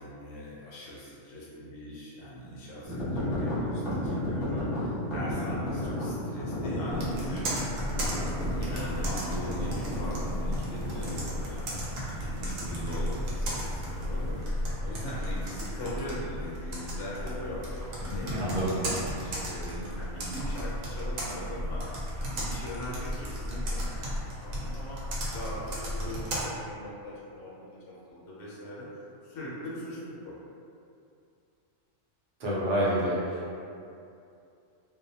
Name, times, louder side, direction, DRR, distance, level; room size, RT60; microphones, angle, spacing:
voice 1, 0.0-7.6 8.6-11.7 12.1-21.8 22.2-25.0 25.3-27.5 27.8-28.9 29.2-30.3, equal, 80° left, -7 dB, 1.0 m, -40 dB
sound 1, 2.8-11.2, left 1 dB, 50° left, 0.8 m, -33 dB
Computer keyboard, 6.9-26.4, equal, 85° right, 1.0 m, -34 dB
sound 2, 7.7-14.5, equal, 25° left, 1.0 m, -40 dB
voice 2, 18.1-18.8 32.4-33.4, equal, 50° right, -7 dB, 0.6 m, -28 dB
2.6 x 2.0 x 2.6 m, 2.5 s
omnidirectional pair, 1.4 m